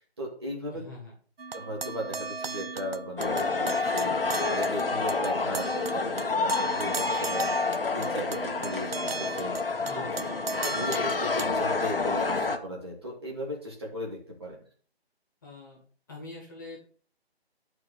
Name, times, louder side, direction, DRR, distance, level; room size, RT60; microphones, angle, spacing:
voice 1, 0.2-0.8 1.5-9.6 9.9-10.0 10.6-14.6, equal, 25° right, -2 dB, 2.5 m, -37 dB
voice 2, 0.7-1.1 9.8-10.3 15.4-15.8 16.1-16.8, left 3 dB, 20° left, -3 dB, 2.2 m, -44 dB
sound 1, 1.4-11.5, right 4 dB, 65° right, 0.8 m, -37 dB
sound 2, 3.2-12.6, left 4 dB, 60° left, 1.4 m, -29 dB
10.5 x 4.8 x 6.6 m, 0.44 s
figure-of-eight pair, 175°, 32 cm